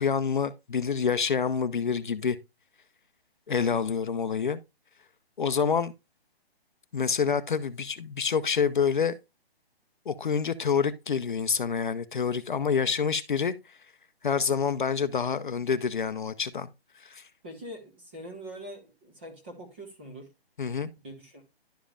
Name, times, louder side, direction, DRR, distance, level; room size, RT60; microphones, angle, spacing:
voice 1, 0.0-2.4 3.5-4.6 5.4-5.9 6.9-9.2 10.1-13.6 14.2-16.7 17.0-17.3 20.6-20.9, left 6 dB, 50° left, 0.6 m, -27 dB
voice 2, 3.5-3.9 17.4-20.3 21.0-21.4, equal, 10° right, 0.9 m, -43 dB
11.5 x 5.2 x 2.4 m
hypercardioid pair, 175°, 31 cm